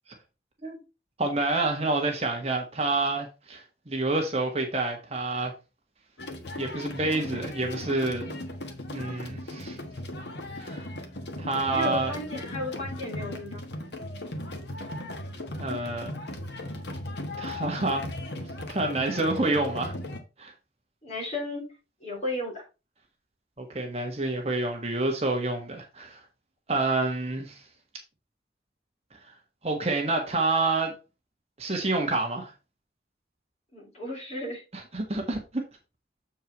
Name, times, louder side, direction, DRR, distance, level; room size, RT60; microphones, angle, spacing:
voice 1, 1.2-5.5 6.6-8.4 8.9-9.8 10.5-10.8 11.4-12.1 15.6-16.1 17.4-18.0 18.7-19.9 20.4-20.5 23.6-26.2 26.7-27.6 29.6-30.9 31.6-32.5 34.7-35.6, right 2 dB, 35° right, 1.5 m, -28 dB
sound 1, 6.2-20.2, left 1 dB, 75° left, 1.4 m, -37 dB
voice 2, 11.7-13.7 21.0-21.7 22.0-22.6 33.7-34.6, left 2 dB, 35° left, 3.8 m, -34 dB
7.6 x 4.6 x 4.5 m
head